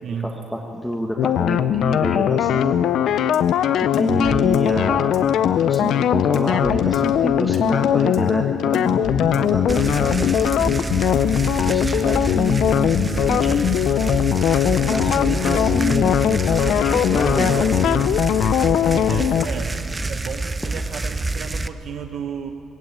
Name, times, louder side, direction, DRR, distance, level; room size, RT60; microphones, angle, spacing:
voice 1, 0.0-0.4 1.2-1.3 17.4-17.7 18.9-19.8 20.1-22.5, right 7 dB, 60° right, 5 dB, 1.0 m, -32 dB
voice 2, 0.5-2.7 3.8-5.2 5.5-10.9 11.7-13.6 14.8-17.5 17.7-18.0, equal, ahead, 0 dB, 1.3 m, -27 dB
sound 1, 1.2-19.5, left 10 dB, 75° left, 0.6 m, -20 dB
sound 2, 3.3-11.5, left 6 dB, 90° left, 1.6 m, -30 dB
sound 3, 9.7-21.7, right 2 dB, 20° right, 0.7 m, -27 dB
20.0 x 16.5 x 9.0 m, 2.7 s
cardioid pair, 130°, 0 cm